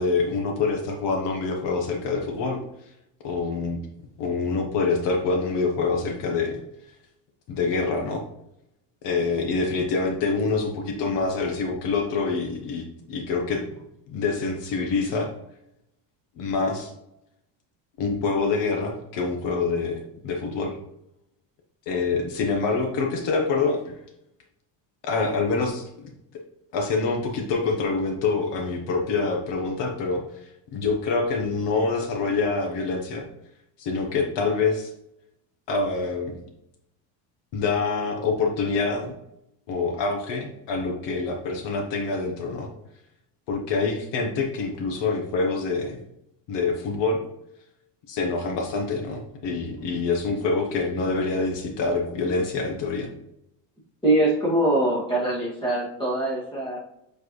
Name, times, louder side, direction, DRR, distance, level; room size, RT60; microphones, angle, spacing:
voice 1, 0.0-2.6 3.2-3.8 4.2-6.6 7.5-8.2 9.0-13.6 14.1-15.3 16.4-16.9 18.0-20.8 21.9-24.0 25.0-26.1 26.7-33.2 33.8-34.9 35.7-36.3 37.5-39.1 39.7-42.7 43.5-46.0 46.5-47.2 48.1-53.1, left 4 dB, 65° left, 2 dB, 1.1 m, -26 dB
voice 2, 54.0-56.8, right 1 dB, 10° left, -6 dB, 2.1 m, -23 dB
7.3 x 4.5 x 3.1 m, 0.82 s
cardioid pair, 145°, 46 cm